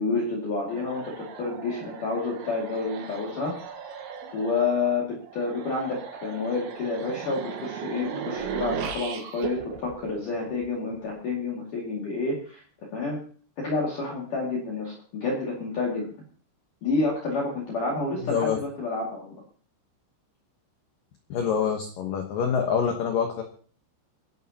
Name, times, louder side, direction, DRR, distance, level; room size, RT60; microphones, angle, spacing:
voice 1, 0.0-3.5 4.0-12.6 12.9-13.2 13.6-16.1 16.8-19.3, left 3 dB, 50° left, -3 dB, 3.2 m, -29 dB
sound 1, 0.7-10.9, right 6 dB, 70° right, 3.4 m, -37 dB
voice 2, 18.3-18.6 21.3-23.4, left 7 dB, 85° left, 3 dB, 1.9 m, -26 dB
28.0 x 11.0 x 2.9 m, 0.43 s
omnidirectional pair, 6.0 m